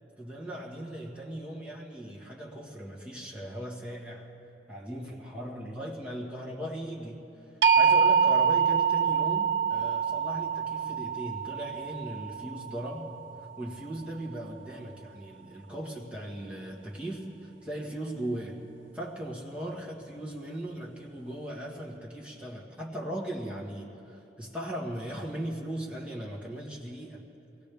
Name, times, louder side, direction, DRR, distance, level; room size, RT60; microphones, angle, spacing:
voice 1, 0.2-4.3 4.7-7.2 7.7-13.1 13.6-18.6 18.9-27.2, right 1 dB, 5° right, -4 dB, 1.7 m, -38 dB
sound 1, 7.6-13.6, right 6 dB, 80° right, 0.5 m, -25 dB
22.5 x 17.0 x 3.5 m, 2.9 s
head